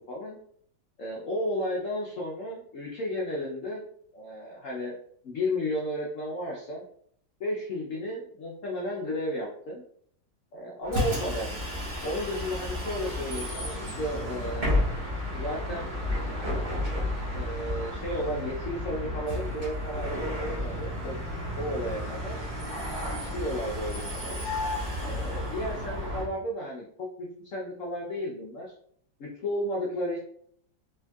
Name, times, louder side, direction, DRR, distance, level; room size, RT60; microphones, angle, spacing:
voice 1, 0.1-0.4 1.0-3.8 4.1-5.0 5.2-6.8 7.4-9.8 10.5-11.6 12.0-14.8 15.3-15.9 17.3-21.2 21.6-22.4 23.3-24.4 25.0-28.7 29.2-30.2, left 1 dB, 75° left, -2 dB, 0.7 m, -33 dB
Bus, 10.8-26.3, left 1 dB, 30° right, 1.1 m, -32 dB
3.6 x 3.5 x 2.3 m, 0.64 s
omnidirectional pair, 2.2 m